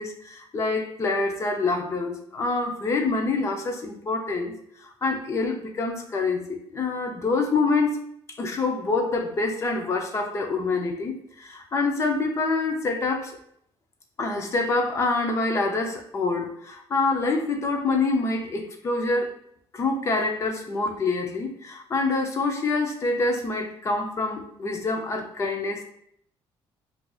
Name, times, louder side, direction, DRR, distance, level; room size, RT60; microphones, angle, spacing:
voice 1, 0.0-4.6 5.0-8.0 8.4-13.4 14.2-19.3 19.7-25.8, left 3 dB, 30° left, 3 dB, 0.5 m, -26 dB
4.5 x 2.4 x 2.3 m, 0.70 s
cardioid pair, 165°, 10 cm